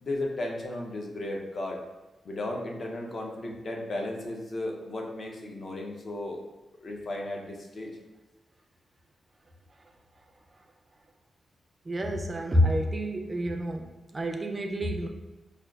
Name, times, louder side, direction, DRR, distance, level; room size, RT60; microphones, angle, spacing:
voice 1, 0.0-1.8 2.2-6.4 6.8-7.9, left 1 dB, 45° left, 0 dB, 0.5 m, -35 dB
voice 2, 11.8-15.1, equal, 25° right, 3 dB, 0.3 m, -28 dB
4.8 x 2.3 x 2.2 m, 1.1 s
wide cardioid pair, 140°, 0 cm